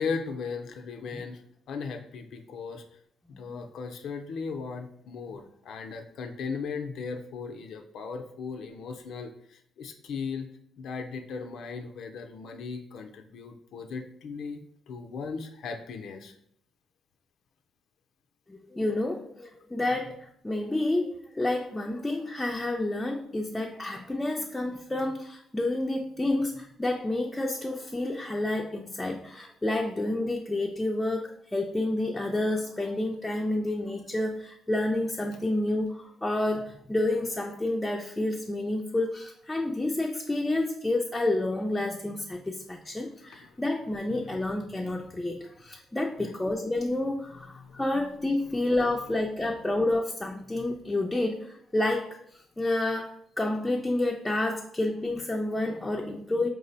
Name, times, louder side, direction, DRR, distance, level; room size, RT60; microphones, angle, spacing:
voice 1, 0.0-1.4 1.7-2.8 3.3-10.5 10.8-14.6 14.9-16.3 43.2-43.5 46.2-46.3 47.6-47.8, left 5 dB, 75° left, 5 dB, 0.4 m, -37 dB
voice 2, 18.5-56.5, left 2 dB, 10° left, 1 dB, 0.4 m, -29 dB
4.8 x 2.0 x 3.9 m, 0.69 s
cardioid pair, 90°, 0 cm